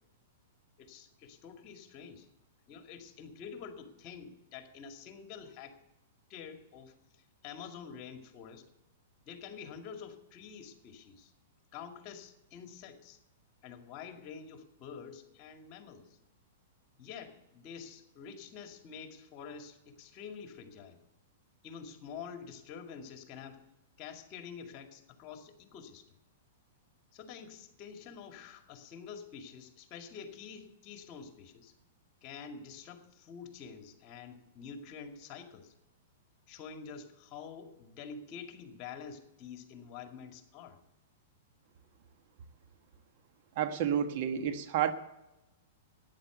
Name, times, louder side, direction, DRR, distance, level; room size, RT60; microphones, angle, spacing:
voice 1, 0.8-2.3 2.7-5.8 6.3-8.7 9.2-11.3 11.7-13.2 13.6-16.2 17.0-21.0 21.6-23.6 24.0-26.1 27.1-31.7 32.2-35.7 36.5-40.8, left 6 dB, 40° left, 6 dB, 2.1 m, -47 dB
voice 2, 43.6-44.9, right 9 dB, 55° right, 9 dB, 1.3 m, -30 dB
13.0 x 9.8 x 7.9 m, 0.97 s
hypercardioid pair, 125°, 0 cm